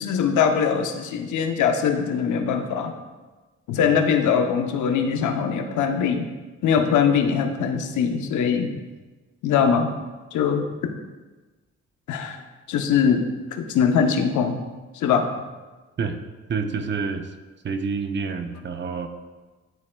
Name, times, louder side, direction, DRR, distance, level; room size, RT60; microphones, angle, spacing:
voice 1, 0.0-3.0 3.7-6.3 6.6-8.7 9.4-9.9 10.3-10.9 12.1-12.4 12.7-14.6 14.9-15.3, left 7 dB, 85° left, 5 dB, 0.7 m, -22 dB
voice 2, 16.5-17.2 17.6-19.1, right 5 dB, 40° right, 7 dB, 0.6 m, -27 dB
11.0 x 4.2 x 2.2 m, 1.3 s
cardioid pair, 100°, 29 cm